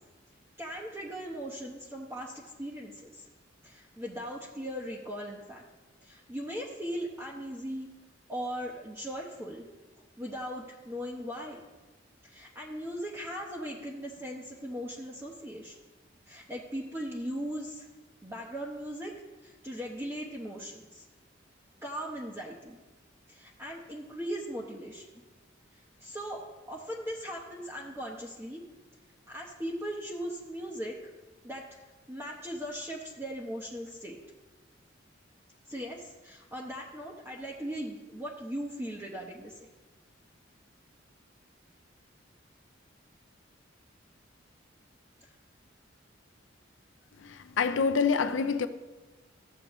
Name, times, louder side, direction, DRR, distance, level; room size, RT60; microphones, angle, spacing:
voice 1, 0.6-3.2 3.6-5.6 6.0-7.9 8.3-9.6 10.2-11.6 12.2-15.8 16.3-17.9 18.2-19.1 19.4-21.0 21.8-22.8 23.3-25.1 26.0-26.4 26.7-28.6 29.3-30.9 31.4-31.6 32.1-34.2 35.7-39.7, equal, 15° right, 0.9 m, -38 dB
voice 2, 47.6-48.7, left 5 dB, 75° left, 0.6 m, -25 dB
14.0 x 7.6 x 3.0 m
head